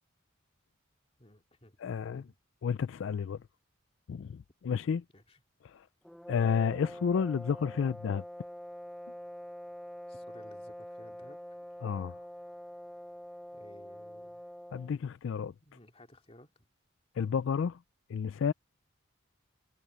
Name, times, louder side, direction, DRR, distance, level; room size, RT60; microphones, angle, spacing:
voice 1, 1.2-1.8 2.1-2.3 5.1-5.4 10.1-11.4 13.5-14.4 15.6-16.5, left 1 dB, 30° left, 2.7 m, -57 dB
voice 2, 1.8-2.2 2.6-3.4 4.1-5.0 5.6-5.9 6.3-8.2 11.8-12.2 14.7-15.5 17.2-17.8 18.1-18.5, left 6 dB, 60° left, 0.3 m, -31 dB
sound 1, 6.0-15.0, equal, ahead, 0.7 m, -45 dB
head